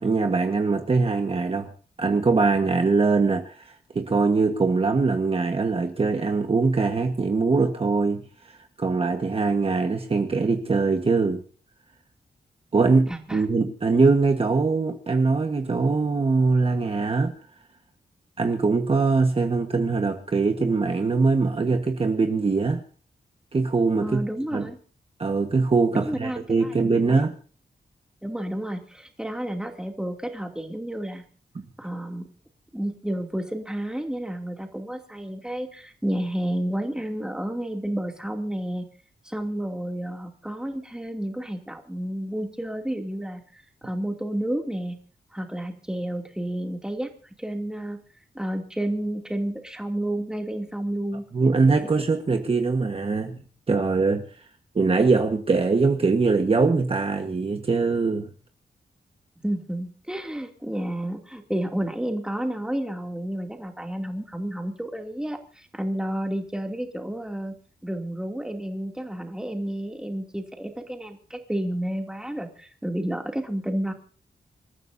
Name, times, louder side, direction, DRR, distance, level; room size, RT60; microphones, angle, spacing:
voice 1, 0.0-1.7 2.0-11.4 12.7-17.3 18.4-22.8 23.5-24.2 24.5-24.7 25.2-27.3 51.3-54.2 54.7-58.3, right 4 dB, 35° right, 1.4 m, -22 dB
voice 2, 13.1-13.4 24.0-24.8 25.9-27.2 28.2-31.2 31.8-32.2 32.7-38.9 39.2-43.4 43.8-45.0 45.3-47.1 47.4-48.0 48.3-51.2 59.4-67.5 67.8-73.9, right 1 dB, 5° right, 2.7 m, -31 dB
27.5 x 14.5 x 2.7 m
wide cardioid pair, 135°, 17 cm